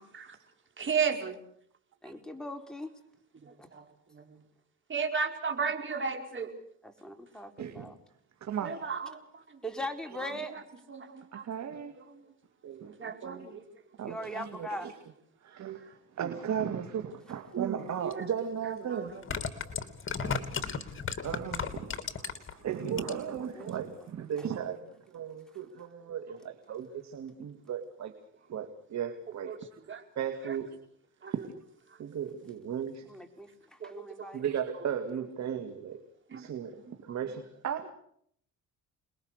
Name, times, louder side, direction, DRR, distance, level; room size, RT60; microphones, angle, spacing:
voice 1, 0.8-1.4 3.4-3.9 4.1-4.4 4.9-6.5 8.6-9.4 10.5-10.6 10.9-11.4 12.1-12.2 12.8-13.6 18.0-18.3 18.6-19.2 29.5-29.6 29.9-30.0 30.4-30.6 31.2-31.3 33.8-34.3 36.3-36.5, right 6 dB, 40° right, 5 dB, 4.9 m, -34 dB
voice 2, 2.0-2.9 3.6-3.7 6.8-8.0 9.6-10.6 14.1-14.9 23.0-23.2 23.5-23.7 33.1-34.4, equal, ahead, 4 dB, 4.2 m, -40 dB
voice 3, 7.6-7.9 8.4-8.8 10.2-10.3 11.3-11.9 12.6-13.5 14.0-14.9 15.4-19.1 20.2-20.8 21.2-28.1 28.5-29.6 30.2-30.8 31.3-31.5 32.0-33.1 34.3-36.0 36.3-37.9, right 8 dB, 65° right, 7 dB, 2.4 m, -36 dB
sound 1, 18.1-18.2 19.1-22.5 22.9-23.4 23.7-23.8, left 6 dB, 40° left, 3.2 m, -34 dB
29.5 x 21.5 x 6.6 m, 0.67 s
cardioid pair, 90°, 30 cm